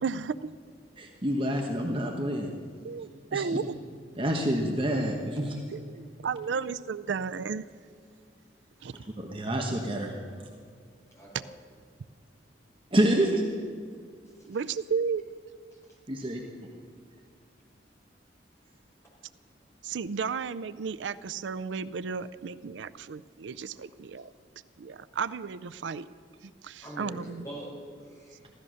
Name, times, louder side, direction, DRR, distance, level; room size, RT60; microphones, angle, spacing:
voice 1, 0.0-0.5 2.8-3.8 5.7-7.7 8.8-8.9 14.5-15.3 19.8-24.3 24.8-26.1 26.4-27.5, right 5 dB, 85° right, 15 dB, 0.4 m, -33 dB
voice 2, 1.0-2.5 3.3-3.4 4.2-5.5 9.2-10.1 12.9-13.4 16.1-16.4, right 1 dB, 30° right, 1 dB, 1.2 m, -27 dB
voice 3, 11.1-11.5 14.3-14.5 16.2-16.3 24.2-24.3 26.8-28.5, equal, 15° left, -5 dB, 5.4 m, -44 dB
16.0 x 13.5 x 6.4 m, 2.1 s
head